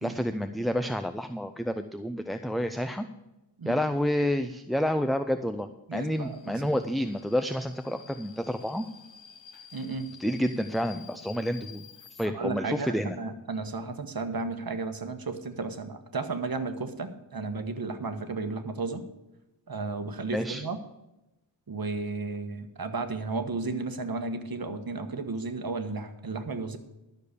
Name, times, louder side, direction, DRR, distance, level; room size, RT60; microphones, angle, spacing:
voice 1, 0.0-3.1 3.7-8.8 10.2-11.8 12.1-13.2 20.3-20.6, equal, ahead, 9 dB, 0.5 m, -29 dB
voice 2, 5.9-6.7 9.7-10.1 12.2-19.0 19.7-20.8 21.7-26.8, right 3 dB, 50° right, 8 dB, 1.3 m, -33 dB
Subway metro underground, 6.2-12.3, left 7 dB, 75° left, 1.2 m, -51 dB
12.5 x 6.7 x 6.8 m, 0.95 s
wide cardioid pair, 85°, 46 cm